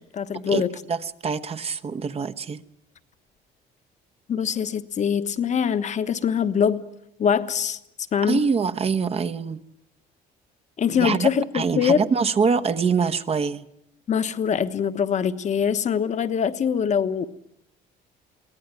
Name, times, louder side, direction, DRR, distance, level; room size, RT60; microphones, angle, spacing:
voice 1, 0.0-0.7 4.3-6.9 7.2-7.8 8.1-8.5 10.8-12.0 14.1-17.3, left 7 dB, 45° left, 1.2 m, -23 dB
voice 2, 0.9-2.6 8.2-9.6 10.9-13.6, right 5 dB, 35° right, 1.0 m, -24 dB
23.5 x 17.5 x 9.2 m
cardioid pair, 110°, 17 cm